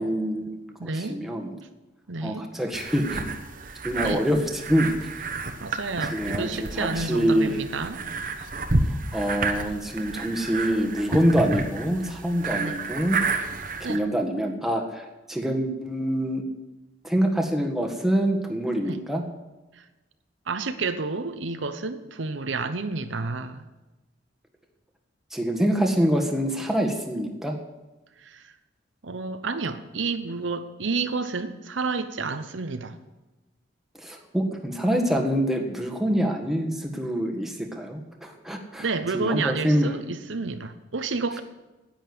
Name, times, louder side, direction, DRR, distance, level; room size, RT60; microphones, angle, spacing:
voice 1, 0.0-1.5 2.2-3.3 3.8-4.4 4.7-5.1 6.1-7.5 9.1-13.2 13.8-16.4 17.0-19.2 25.3-27.6 34.0-38.9 39.1-39.9, equal, ahead, 2 dB, 1.6 m, -25 dB
voice 2, 0.8-1.2 2.1-2.5 4.0-4.2 5.6-8.1 8.4-8.5 10.0-10.1 12.5-12.8 13.3-13.5 13.8-14.0 18.7-19.0 20.5-23.6 28.2-28.5 29.0-33.0 38.8-41.4, right 4 dB, 75° right, 9 dB, 0.9 m, -30 dB
sound 1, 2.7-14.0, right 3 dB, 45° right, 1.1 m, -30 dB
10.5 x 8.9 x 9.5 m, 1.1 s
head